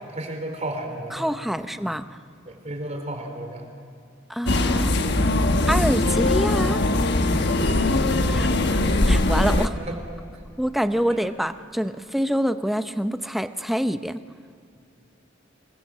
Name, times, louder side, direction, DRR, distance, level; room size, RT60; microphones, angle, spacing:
voice 1, 0.1-1.7 2.5-3.7 7.9-8.6 9.5-10.0 11.1-11.2, right 1 dB, 35° right, 4 dB, 3.9 m, -34 dB
voice 2, 1.1-2.2 4.3-4.9 5.7-6.8 8.2-8.8 9.1-9.7 10.6-14.2, equal, ahead, 10 dB, 0.7 m, -26 dB
sound 1, 4.5-9.7, left 2 dB, 60° left, 1.3 m, -21 dB
26.0 x 21.5 x 7.3 m, 2.5 s
head